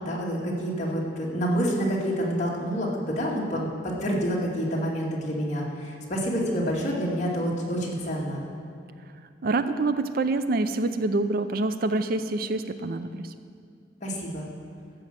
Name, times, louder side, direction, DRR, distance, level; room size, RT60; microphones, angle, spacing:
voice 1, 0.0-8.4 14.0-14.4, equal, 40° left, -4 dB, 2.2 m, -28 dB
voice 2, 9.4-13.3, right 2 dB, 50° right, 10 dB, 0.5 m, -26 dB
14.0 x 6.1 x 7.7 m, 2.3 s
head